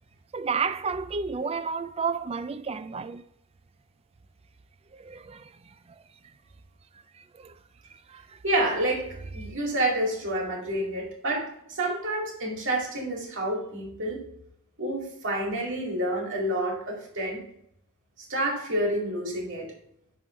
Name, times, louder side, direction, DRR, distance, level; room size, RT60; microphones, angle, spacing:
voice 1, 0.3-3.2 4.9-5.7 7.2-7.6 7.9-8.4, right 5 dB, 25° right, 0.3 m, -32 dB
voice 2, 8.4-14.2 14.8-17.4 18.3-19.7, right 1 dB, 55° right, 2.3 m, -29 dB
11.0 x 3.8 x 3.1 m
head